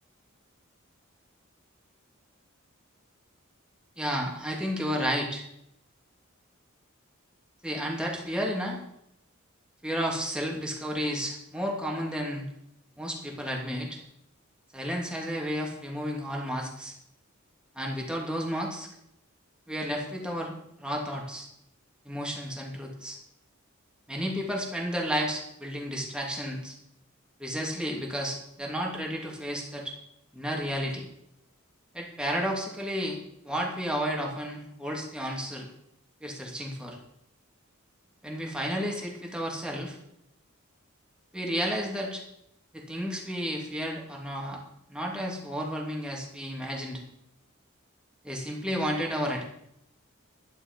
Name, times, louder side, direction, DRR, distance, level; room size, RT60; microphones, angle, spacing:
voice 1, 4.0-5.4 7.6-8.8 9.8-12.4 13.0-14.0 14.7-16.9 17.7-18.9 19.7-21.5 22.0-23.2 24.1-26.8 27.4-30.0 30.3-31.1 31.9-33.2 33.4-35.7 36.2-37.0 38.2-40.0 41.3-42.2 42.7-44.6 44.9-47.0 48.2-49.4, equal, 5° right, -1 dB, 2.8 m, -32 dB
12.0 x 11.0 x 5.4 m, 0.77 s
head